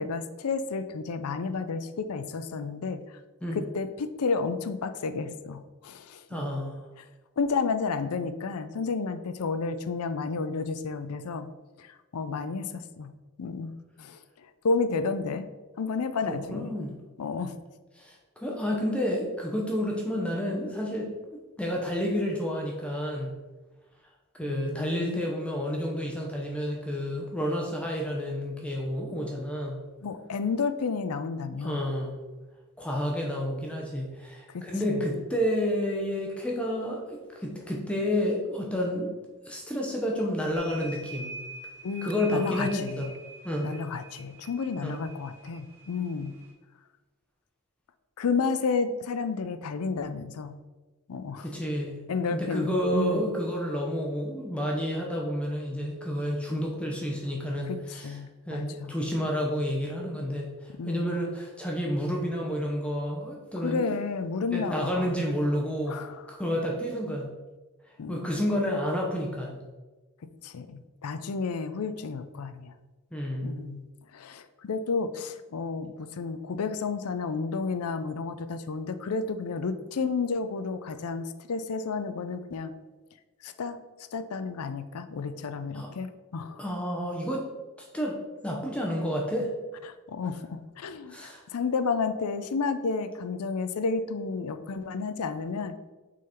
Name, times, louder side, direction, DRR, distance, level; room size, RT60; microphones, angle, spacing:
voice 1, 0.0-3.0 3.5-6.5 7.4-11.5 11.8-13.1 13.4-15.5 15.8-16.7 17.2-17.6 24.5-25.2 30.0-31.8 34.5-35.1 41.8-43.1 43.6-46.4 48.2-50.6 51.1-51.5 52.1-53.3 57.6-58.9 60.8-61.2 63.6-65.2 65.9-66.3 68.0-68.3 70.4-72.7 73.4-73.9 74.1-82.7 83.4-83.8 84.1-86.6 90.1-95.7, left 4 dB, 80° left, 11 dB, 0.5 m, -31 dB
voice 2, 6.3-6.8 16.3-17.0 18.0-23.3 24.4-29.8 31.6-32.2 32.8-39.1 39.5-41.3 42.0-43.1 43.4-43.8 44.8-45.0 51.4-52.0 52.3-58.2 58.5-63.8 64.5-67.3 68.1-69.6 73.1-73.6 85.7-85.9 86.6-87.5 87.8-88.2 88.4-89.5 91.1-91.4, equal, 5° left, -1 dB, 0.8 m, -30 dB
sound 1, 40.5-46.5, right 2 dB, 10° right, 1.6 m, -45 dB
6.2 x 3.9 x 4.3 m, 1.2 s
head